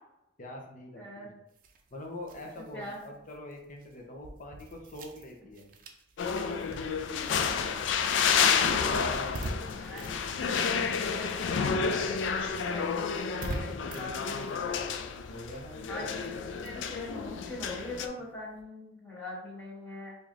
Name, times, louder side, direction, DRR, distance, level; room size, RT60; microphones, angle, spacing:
voice 1, 0.4-1.0 1.9-5.7 8.7-9.6 15.3-16.2, left 1 dB, 45° left, 1 dB, 0.7 m, -44 dB
voice 2, 0.9-1.3 2.7-3.0 9.5-11.0 12.7-12.9 13.3-14.4 15.9-20.1, left 2 dB, 10° left, -8 dB, 1.2 m, -43 dB
sound 1, 1.5-11.4 11.7-18.6, right 2 dB, 50° right, 0.5 m, -46 dB
sound 2, 6.2-18.1, left 6 dB, 80° left, 0.3 m, -30 dB
4.7 x 2.8 x 2.5 m, 0.82 s
head